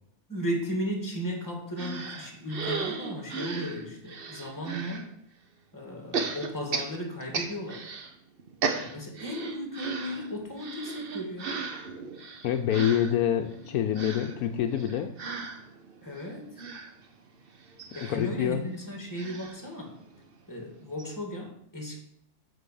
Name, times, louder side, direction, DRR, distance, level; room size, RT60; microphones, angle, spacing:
voice 1, 0.3-5.1 5.7-7.9 8.8-11.6 16.0-16.6 17.9-20.0 20.5-22.0, equal, 10° left, 1 dB, 2.0 m, -35 dB
sound 1, 1.8-5.0 6.1-8.1 8.4-20.3 20.7-20.8 21.0-21.1, right 5 dB, 45° right, 0.9 m, -36 dB
voice 2, 12.4-15.1 18.0-18.7, left 10 dB, 75° left, 6 dB, 1.1 m, -26 dB
8.6 x 4.5 x 6.9 m, 0.70 s
omnidirectional pair, 1.6 m